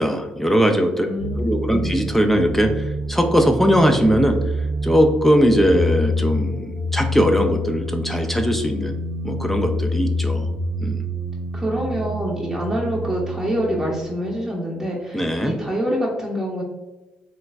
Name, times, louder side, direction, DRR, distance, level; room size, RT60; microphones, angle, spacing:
voice 1, 0.0-1.1 1.4-2.7 3.1-4.4 4.8-8.9 9.2-10.5 10.8-11.0 15.1-15.5, equal, 5° left, 5 dB, 0.4 m, -19 dB
voice 2, 1.0-2.0 11.5-16.6, equal, 10° right, -5 dB, 0.8 m, -26 dB
sound 1, 1.2-14.1, equal, 40° left, 1.0 m, -27 dB
3.2 x 3.0 x 2.4 m, 1.0 s
hypercardioid pair, 55°, 3 cm